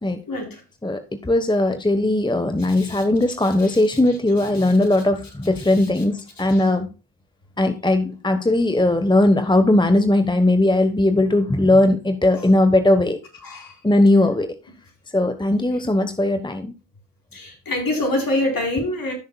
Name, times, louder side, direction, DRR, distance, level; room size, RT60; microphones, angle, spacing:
voice 1, 0.3-0.6 2.8-3.0 3.6-3.8 4.6-4.7 5.6-6.0 6.5-6.8 12.3-12.5 13.4-13.8 17.3-19.1, left 1 dB, 50° left, 4.4 m, -26 dB
voice 2, 0.8-6.9 7.6-13.2 13.8-14.5 15.1-16.7, left 1 dB, 10° left, 1.2 m, -18 dB
16.0 x 6.4 x 2.3 m
supercardioid pair, 45°, 44 cm